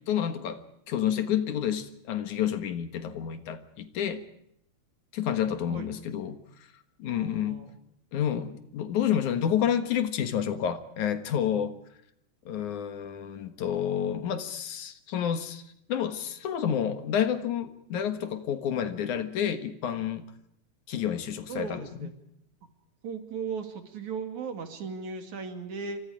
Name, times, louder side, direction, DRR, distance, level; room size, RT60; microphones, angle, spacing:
voice 1, 0.1-0.6 0.9-4.2 5.1-6.4 7.0-7.6 8.1-11.7 12.5-15.6 15.9-20.2 20.9-22.1, left 9 dB, 70° left, 10 dB, 2.9 m, -29 dB
voice 2, 7.0-7.7 21.5-22.1 23.0-26.0, right 5 dB, 65° right, 7 dB, 3.7 m, -37 dB
29.0 x 25.5 x 5.0 m, 0.71 s
omnidirectional pair, 3.7 m